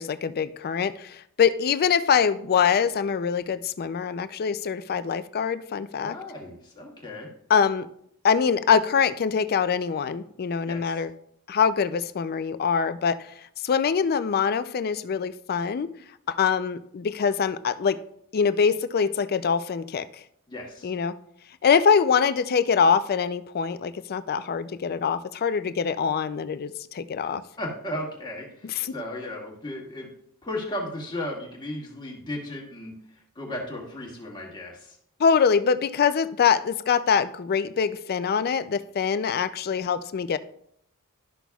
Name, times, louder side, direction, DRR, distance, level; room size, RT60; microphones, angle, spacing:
voice 1, 0.0-6.1 7.5-7.9 8.2-11.1 11.5-13.3 13.6-15.9 16.3-18.0 18.3-20.1 20.8-21.1 21.6-27.4 28.6-28.9 35.2-40.4, left 6 dB, 45° left, 13 dB, 0.4 m, -24 dB
voice 2, 6.0-7.3 10.6-11.0 20.5-20.9 27.2-30.1 30.4-32.9 33.3-34.9, left 1 dB, 20° left, -2 dB, 1.7 m, -35 dB
12.0 x 6.1 x 2.3 m, 0.70 s
head